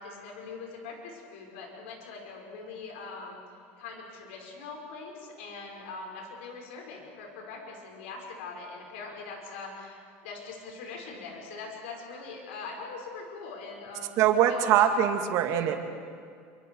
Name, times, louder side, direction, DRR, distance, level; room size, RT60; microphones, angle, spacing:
voice 1, 0.0-3.4 3.8-14.2 14.5-14.9, left 4 dB, 85° left, 0 dB, 5.4 m, -42 dB
voice 2, 14.2-15.7, right 10 dB, 60° right, 5 dB, 2.3 m, -23 dB
27.5 x 25.5 x 4.8 m, 2.3 s
supercardioid pair, 110°, 6 cm